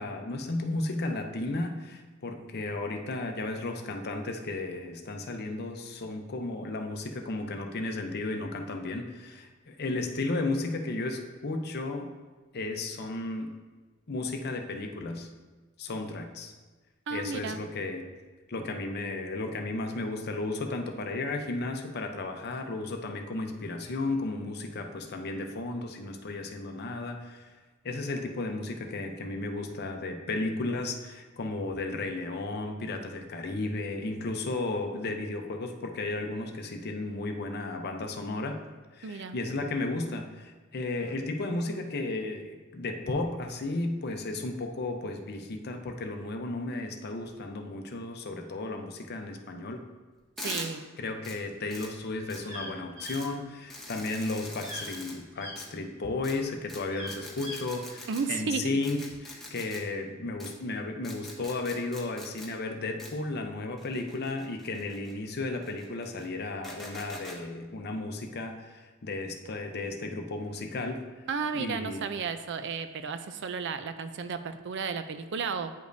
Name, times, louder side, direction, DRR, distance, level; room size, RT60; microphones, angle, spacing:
voice 1, 0.0-12.1 12.5-13.5 14.1-15.3 15.8-16.5 17.1-18.1 18.5-27.5 27.8-38.6 38.9-49.8 51.0-71.0 71.5-72.0, left 2 dB, 50° left, 5 dB, 0.6 m, -34 dB
voice 2, 17.1-17.6 39.0-39.4 50.4-50.8 58.1-58.8 71.3-75.7, right 5 dB, 60° right, 10 dB, 0.4 m, -33 dB
sound 1, 50.4-50.7 51.2-51.4 51.7-51.9 52.3-52.4 53.0-53.3 53.7-55.1 55.6-55.7 56.2-56.3 56.7-56.8 57.1-58.2 58.8-59.8 60.4-60.5 61.0-62.5 63.0-63.1 63.8-65.1 65.6-66.3 66.6-67.4, left 1 dB, ahead, 1.0 m, -43 dB
sound 2, 52.4-55.6 56.1-57.7, equal, 80° right, 1.6 m, -41 dB
9.3 x 5.0 x 2.6 m, 1.3 s
head